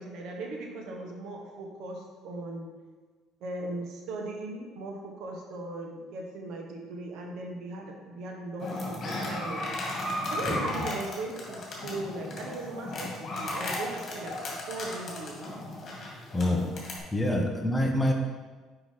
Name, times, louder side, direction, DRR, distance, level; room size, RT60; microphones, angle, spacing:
voice 1, 0.0-2.7 3.4-9.6 10.3-14.3 14.7-15.5 17.3-17.4, right 2 dB, 70° right, 1 dB, 1.3 m, -38 dB
sound 1, 8.6-17.0, left 1 dB, 45° left, 2.3 m, -35 dB
voice 2, 10.5-10.9 16.3-16.7 17.1-18.1, left 1 dB, 10° left, 2 dB, 1.0 m, -26 dB
6.0 x 5.4 x 4.6 m, 1.4 s
cardioid pair, 105°, 0 cm